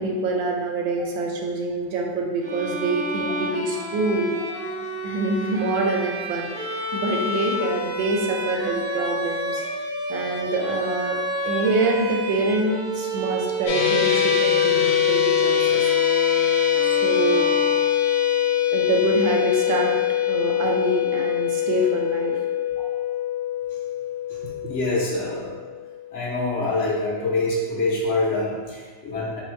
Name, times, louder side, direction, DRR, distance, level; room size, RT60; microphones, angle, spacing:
voice 1, 0.0-4.4 5.0-9.6 10.1-11.2 11.5-15.9 16.8-17.5 18.7-19.9 20.3-22.4 24.6-24.7, right 2 dB, 85° right, 1 dB, 1.4 m, -25 dB
Bowed string instrument, 2.4-18.4, equal, 45° right, 0.9 m, -30 dB
sound 1, 13.7-26.0, left 10 dB, 85° left, 1.3 m, -23 dB
voice 2, 24.7-25.7 26.1-29.4, left 2 dB, 55° left, -4 dB, 0.8 m, -25 dB
4.3 x 2.2 x 4.3 m, 1.5 s
omnidirectional pair, 2.1 m